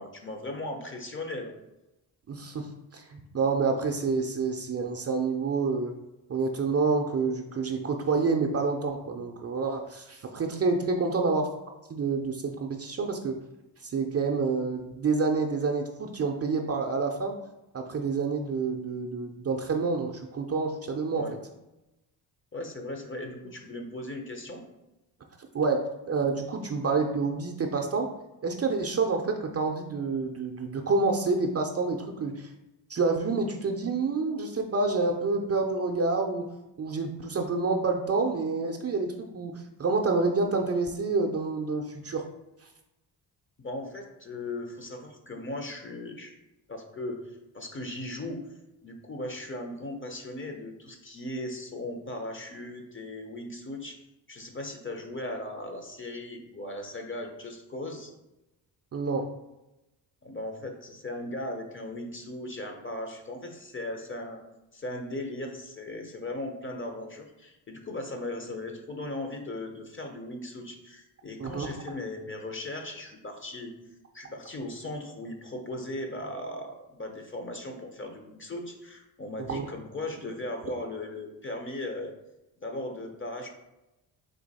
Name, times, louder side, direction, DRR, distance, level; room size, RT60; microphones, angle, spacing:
voice 1, 0.0-1.6 11.0-11.1 21.1-21.4 22.5-24.6 43.6-46.3 46.7-48.5 48.8-54.0 54.3-58.1 60.2-64.4 64.7-73.7 74.1-82.1 82.6-83.5, left 1 dB, 25° left, 4 dB, 0.7 m, -38 dB
voice 2, 2.3-5.9 6.3-11.5 11.9-13.4 13.8-17.4 17.7-21.2 25.5-28.1 28.4-32.5 32.9-36.5 36.8-42.3 58.9-59.3 71.4-71.7 79.4-79.6, right 4 dB, 35° right, 2 dB, 0.5 m, -28 dB
3.8 x 2.8 x 4.0 m, 0.96 s
cardioid pair, 75°, 45 cm